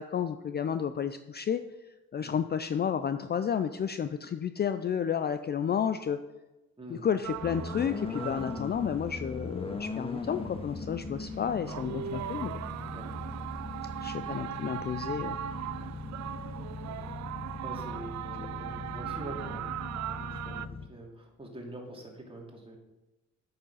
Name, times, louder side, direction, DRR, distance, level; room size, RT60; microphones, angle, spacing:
voice 1, 0.0-1.6 2.1-6.2 6.9-12.6 14.0-15.4, left 8 dB, 35° left, 10 dB, 0.4 m, -31 dB
voice 2, 6.8-7.1 12.9-13.4 15.7-15.9 16.9-17.0 17.6-19.8 20.1-22.8, right 1 dB, 20° right, -1 dB, 2.7 m, -45 dB
sound 1, 7.2-20.7, right 11 dB, 65° right, 0.5 m, -40 dB
sound 2, 7.4-20.9, left 3 dB, 20° left, 0.8 m, -40 dB
8.7 x 6.7 x 5.6 m, 1.0 s
cardioid pair, 90°, 30 cm